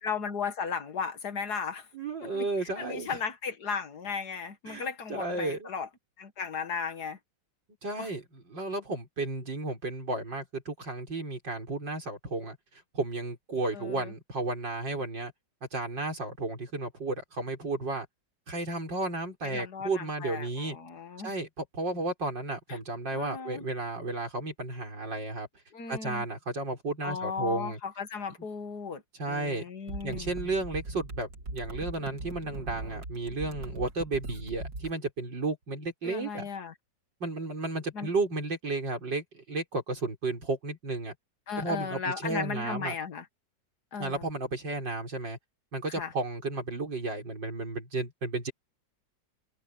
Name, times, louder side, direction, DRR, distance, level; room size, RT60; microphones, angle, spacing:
voice 1, 0.0-1.9 2.3-5.9 6.2-7.2 8.0-8.1 13.7-14.1 19.4-21.3 22.7-22.8 23.1-23.7 25.7-26.3 27.0-30.3 36.0-36.7 37.9-38.1 41.5-43.3 43.9-44.2 45.9-46.1, left 5 dB, 60° left, 2.1 m, -36 dB
voice 2, 1.9-3.2 4.7-5.7 7.8-15.3 15.7-18.1 18.5-20.8 21.2-25.5 25.9-27.8 29.1-29.6 30.0-36.5 37.2-41.1 41.6-42.9 44.0-45.4 45.7-48.5, right 2 dB, 75° right, 6.2 m, -33 dB
sound 1, 29.9-34.9, right 2 dB, 55° right, 2.9 m, -40 dB
omnidirectional pair, 2.0 m